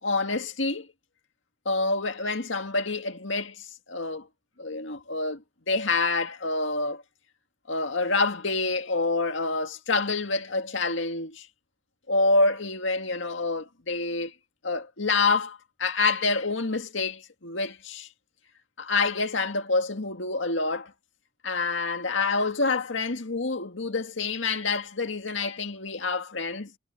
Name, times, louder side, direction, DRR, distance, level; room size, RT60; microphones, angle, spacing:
voice 1, 0.0-0.9 1.7-4.3 4.6-7.0 7.7-11.5 12.1-14.3 14.6-18.1 18.8-20.9 21.4-26.7, left 3 dB, 80° left, 2.0 m, -27 dB
head